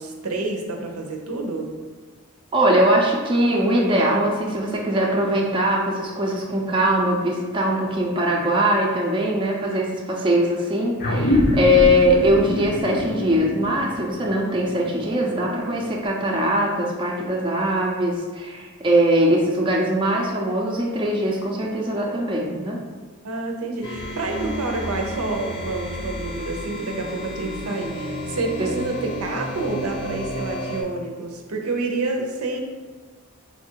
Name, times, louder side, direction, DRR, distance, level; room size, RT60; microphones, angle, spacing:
voice 1, 0.0-1.7 23.2-32.6, right 2 dB, 80° right, 2 dB, 0.6 m, -28 dB
voice 2, 2.5-22.8 28.6-28.7, equal, 20° right, -2 dB, 0.5 m, -21 dB
sound 1, 11.0-15.9, left 1 dB, 40° left, 0.6 m, -25 dB
sound 2, 23.8-30.8, equal, 75° left, 0.9 m, -32 dB
3.8 x 2.4 x 4.4 m, 1.4 s
head